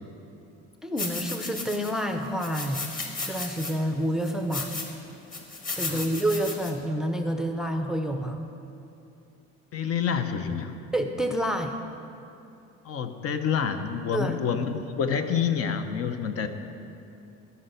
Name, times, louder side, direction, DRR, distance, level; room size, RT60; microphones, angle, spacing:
voice 1, 0.8-2.9 3.2-4.8 5.8-8.4 10.9-11.7 14.1-14.4, right 1 dB, ahead, 5 dB, 0.6 m, -28 dB
sound 1, 1.0-2.0 2.4-3.7 4.2-4.9 5.3-6.7, left 3 dB, 30° left, 1.6 m, -34 dB
voice 2, 9.7-10.7 12.8-16.5, left 7 dB, 50° left, 7 dB, 0.9 m, -28 dB
14.0 x 5.8 x 8.0 m, 2.7 s
cardioid pair, 120°, 29 cm